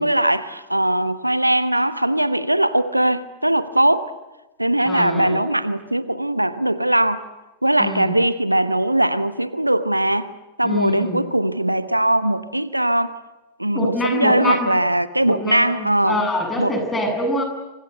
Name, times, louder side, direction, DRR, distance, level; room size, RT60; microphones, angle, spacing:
voice 1, 0.0-4.1 4.6-7.2 7.6-10.3 10.6-13.2 13.6-16.2 16.6-16.7, right 1 dB, 85° right, 1.1 m, -20 dB
voice 2, 4.8-5.4 7.8-8.1 10.6-11.2 13.7-14.7 15.3-17.4, left 1 dB, 15° left, 7.9 m, -25 dB
28.0 x 25.0 x 8.1 m
figure-of-eight pair, 90°, 0 cm